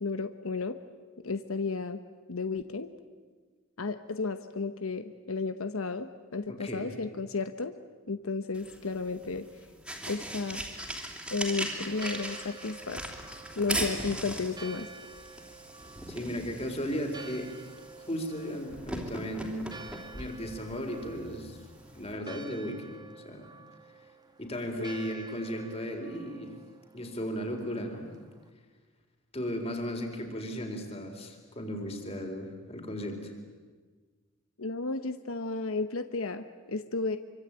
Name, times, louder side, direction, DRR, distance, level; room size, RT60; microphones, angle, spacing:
voice 1, 0.0-0.8 1.2-2.0 2.3-2.9 3.8-7.8 8.1-9.5 10.1-10.6 11.3-13.0 13.6-14.9 24.8-24.9 34.6-37.2, left 3 dB, 85° left, 10 dB, 1.0 m, -33 dB
voice 2, 6.5-6.9 16.1-17.5 18.1-19.7 20.1-21.6 21.9-23.0 23.2-23.5 24.4-26.5 26.9-28.0 29.3-33.3, equal, 30° left, 4 dB, 4.1 m, -35 dB
sound 1, 8.5-22.1, right 1 dB, 5° right, 3.1 m, -40 dB
Church bell, 11.9-28.5, right 4 dB, 20° right, 2.0 m, -50 dB
25.5 x 24.5 x 9.0 m, 1.4 s
head